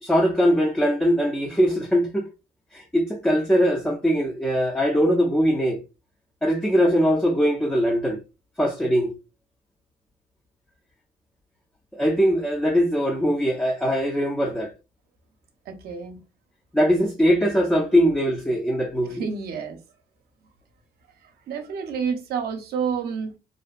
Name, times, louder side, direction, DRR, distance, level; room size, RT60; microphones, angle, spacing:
voice 1, 0.0-2.3 2.7-5.8 6.4-8.2 8.6-9.1 11.9-14.7 16.7-19.2, equal, 5° left, 0.4 m, -21 dB
voice 2, 15.7-16.2 19.0-19.8 21.2-23.4, right 6 dB, 65° right, 0.6 m, -29 dB
2.5 x 2.1 x 2.4 m
cardioid pair, 110°, 17 cm